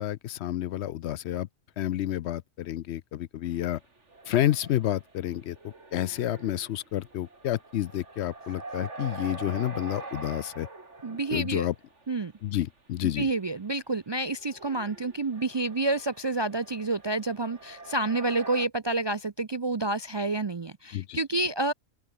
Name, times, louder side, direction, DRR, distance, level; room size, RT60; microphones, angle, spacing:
voice 1, 0.0-1.5 1.8-3.8 4.3-5.6 5.9-10.7 11.3-11.7 12.4-13.3 20.9-21.2, left 12 dB, 70° left, 0.8 m, -29 dB
sound 1, 3.5-3.6 4.0-12.0 14.2-18.7, right 3 dB, 75° right, 3.8 m, -44 dB
voice 2, 11.0-11.7 12.1-12.3 13.0-21.7, right 2 dB, 40° right, 0.4 m, -29 dB
open air
omnidirectional pair, 1.2 m